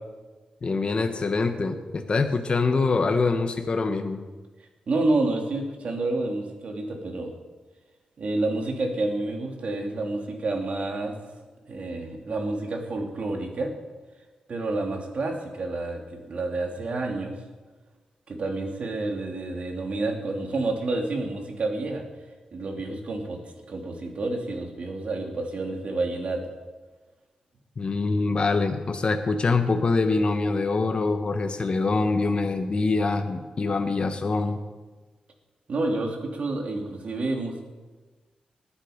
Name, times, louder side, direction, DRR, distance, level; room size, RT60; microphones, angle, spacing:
voice 1, 0.6-4.2 27.8-34.6, left 3 dB, 45° left, 6 dB, 1.2 m, -24 dB
voice 2, 4.9-7.3 8.2-11.1 11.6-13.7 14.5-17.4 18.3-22.0 22.5-26.4 35.7-37.6, right 2 dB, 60° right, 2 dB, 2.8 m, -29 dB
19.5 x 10.0 x 5.1 m, 1.3 s
cardioid pair, 90°, 2 cm